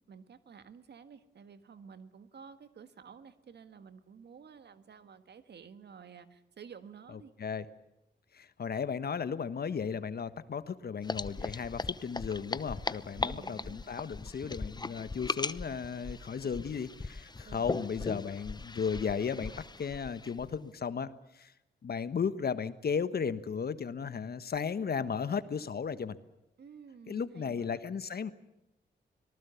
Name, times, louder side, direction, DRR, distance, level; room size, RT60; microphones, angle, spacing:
voice 1, 0.1-7.3 13.1-13.9 17.4-17.9 26.6-27.8, right 6 dB, 65° right, 11 dB, 1.7 m, -52 dB
voice 2, 8.3-19.5 19.8-21.5 21.8-26.2 27.1-28.3, left 6 dB, 55° left, 13 dB, 1.4 m, -35 dB
sound 1, 11.0-20.6, left 3 dB, 20° left, 0.9 m, -39 dB
25.0 x 19.0 x 7.1 m, 0.89 s
supercardioid pair, 55°, 19 cm